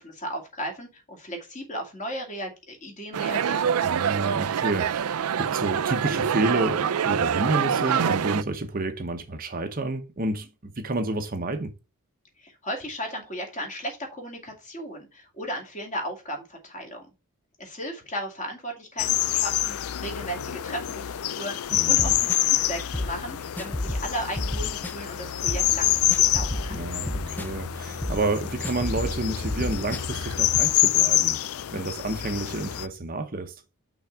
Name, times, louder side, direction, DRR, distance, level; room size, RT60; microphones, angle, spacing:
voice 1, 0.0-3.7 12.4-17.1 17.6-26.8, equal, 35° left, 2.4 m, -36 dB
sound 1, 3.1-8.4, right 8 dB, 80° right, 0.4 m, -25 dB
voice 2, 3.8-11.7 21.7-22.2 26.7-33.6, right 2 dB, 40° right, 0.8 m, -30 dB
sound 2, 19.0-32.9, left 13 dB, 70° left, 0.4 m, -26 dB
sound 3, 21.7-30.6, left 1 dB, 10° left, 0.5 m, -33 dB
5.9 x 4.0 x 5.7 m
head